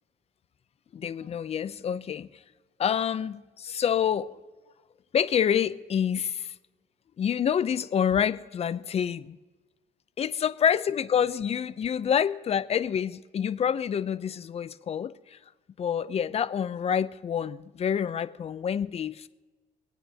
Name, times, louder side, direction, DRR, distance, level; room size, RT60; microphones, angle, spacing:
voice 1, 0.9-2.3 2.8-4.3 5.1-6.5 7.2-9.4 10.2-15.4 15.8-19.3, left 8 dB, 35° left, 14 dB, 0.6 m, -27 dB
25.5 x 9.2 x 2.9 m, 1.3 s
cardioid pair, 110°, 17 cm